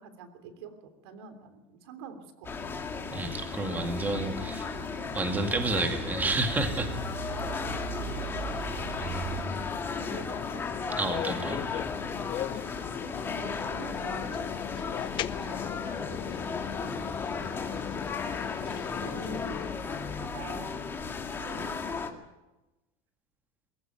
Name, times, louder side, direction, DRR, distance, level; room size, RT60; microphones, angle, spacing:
voice 1, 0.0-2.8 7.3-7.6 9.3-9.7 10.0-10.6 13.3-14.4 15.3-15.7 16.1-16.3 16.7-17.1 19.0-19.7 20.2-20.8 21.4-21.9, right 4 dB, 85° right, 8 dB, 3.3 m, -46 dB
sound 1, 2.4-22.1, left 5 dB, 15° left, 2.1 m, -35 dB
sound 2, 2.4-9.4, right 11 dB, 50° right, 1.1 m, -42 dB
voice 2, 3.1-4.7 5.1-6.9 9.0-9.6 11.0-11.6, right 2 dB, 15° right, 5 dB, 2.2 m, -30 dB
sound 3, 5.6-19.8, left 12 dB, 40° left, 0.8 m, -40 dB
23.5 x 15.0 x 9.3 m, 1.0 s
supercardioid pair, 145°, 13 cm